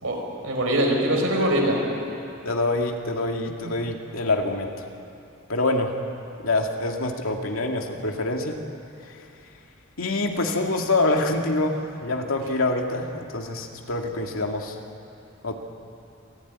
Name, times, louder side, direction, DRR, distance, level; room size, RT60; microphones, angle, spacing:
voice 1, 0.4-1.8, right 1 dB, 85° right, 0 dB, 5.5 m, -22 dB
voice 2, 2.4-4.7 5.5-5.9 6.4-8.6 10.0-14.8 15.4-15.6, left 2 dB, 85° left, 2 dB, 2.5 m, -25 dB
26.0 x 16.0 x 9.8 m, 2.7 s
head